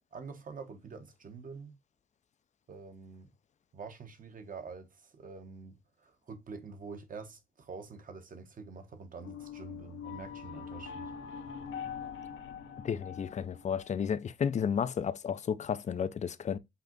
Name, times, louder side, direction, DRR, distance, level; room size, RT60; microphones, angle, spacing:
voice 1, 0.1-1.8 2.7-3.3 3.7-11.4, right 4 dB, 45° right, 1.1 m, -46 dB
sound 1, 9.2-14.2, left 7 dB, 75° left, 0.8 m, -43 dB
voice 2, 12.8-16.6, left 7 dB, 35° left, 0.5 m, -32 dB
5.6 x 2.5 x 3.7 m
cardioid pair, 90°, 20 cm